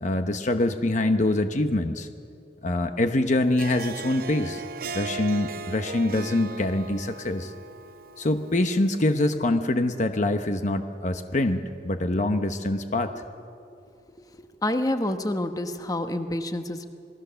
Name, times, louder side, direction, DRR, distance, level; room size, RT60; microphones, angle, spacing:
voice 1, 0.0-2.1 2.6-4.6 4.9-7.5 8.2-13.1, left 1 dB, 45° left, 7 dB, 0.9 m, -25 dB
Harp, 3.4-8.8, right 4 dB, 55° right, 0.6 m, -38 dB
voice 2, 14.6-16.8, left 1 dB, 20° left, 7 dB, 1.1 m, -28 dB
27.0 x 19.5 x 6.9 m, 2.5 s
head